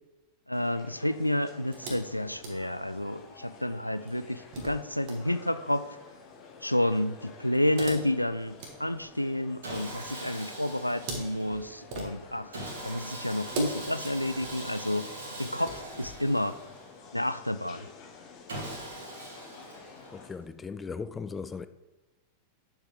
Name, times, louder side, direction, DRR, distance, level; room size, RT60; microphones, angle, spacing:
voice 1, 0.5-5.9 6.6-12.5 12.8-15.1 15.4-16.5 17.1-17.9, left 1 dB, 90° left, 0.3 m, -30 dB
sound 1, 0.5-20.3, left 5 dB, 40° left, 1.9 m, -51 dB
sound 2, 1.7-3.2 4.1-5.2 7.5-9.7 10.8-12.5 13.4-14.8 15.4-16.2, right 2 dB, 45° right, 1.8 m, -42 dB
Sawing, 9.6-11.7 12.5-17.1 18.5-20.3, right 1 dB, 65° right, 2.3 m, -42 dB
voice 2, 20.1-21.7, left 5 dB, 15° left, 0.4 m, -38 dB
9.2 x 7.1 x 3.6 m
figure-of-eight pair, 90°, 0 cm